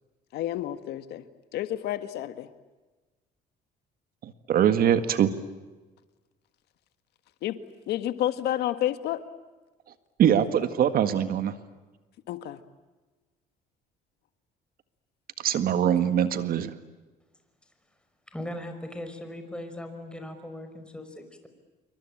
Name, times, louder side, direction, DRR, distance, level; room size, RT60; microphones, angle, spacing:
voice 1, 0.3-1.2 1.5-2.5 7.4-7.6 7.9-9.2 12.3-12.6, left 12 dB, 75° left, 11 dB, 1.6 m, -30 dB
voice 2, 4.2-5.3 10.2-11.5 15.4-16.7, right 9 dB, 60° right, 11 dB, 1.8 m, -23 dB
voice 3, 18.3-21.5, left 1 dB, 5° left, 7 dB, 5.6 m, -39 dB
27.0 x 24.5 x 8.9 m, 1.2 s
cardioid pair, 110°, 17 cm